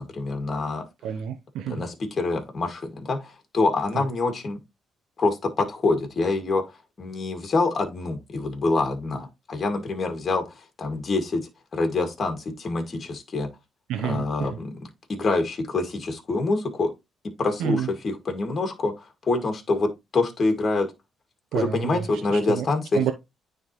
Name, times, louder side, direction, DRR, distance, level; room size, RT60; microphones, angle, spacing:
voice 1, 0.0-0.8 1.7-4.6 5.2-6.6 7.0-13.5 14.0-14.7 15.1-16.9 17.4-20.9 21.5-23.1, left 3 dB, 40° left, 1.8 m, -26 dB
voice 2, 1.0-1.8 3.9-4.0 13.9-14.6 17.6-17.9 21.5-22.7 22.9-23.1, right 9 dB, 85° right, 0.7 m, -29 dB
9.4 x 3.5 x 3.0 m
cardioid pair, 90°, 0 cm